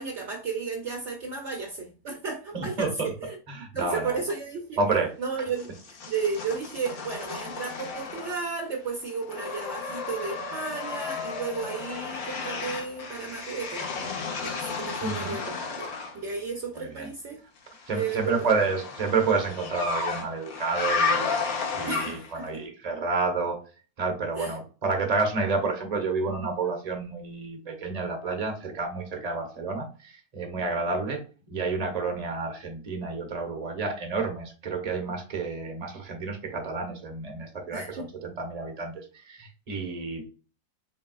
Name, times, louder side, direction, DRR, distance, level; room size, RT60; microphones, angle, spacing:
voice 1, 0.0-3.4 3.7-4.8 5.2-15.9 16.1-17.4 17.9-18.5 21.9-22.6 24.4-24.6 30.8-30.9 37.7-38.1, right 5 dB, 60° right, 0.9 m, -33 dB
voice 2, 2.5-3.1 3.5-4.2 4.8-5.1 15.0-15.4 16.8-17.1 17.9-21.3 21.7-23.6 24.0-31.2 31.5-40.3, right 4 dB, 30° right, 1.0 m, -30 dB
sound 1, 5.6-8.6 8.9-16.2 17.7-22.5, left 4 dB, 75° left, 1.4 m, -33 dB
4.7 x 3.4 x 2.4 m
omnidirectional pair, 1.6 m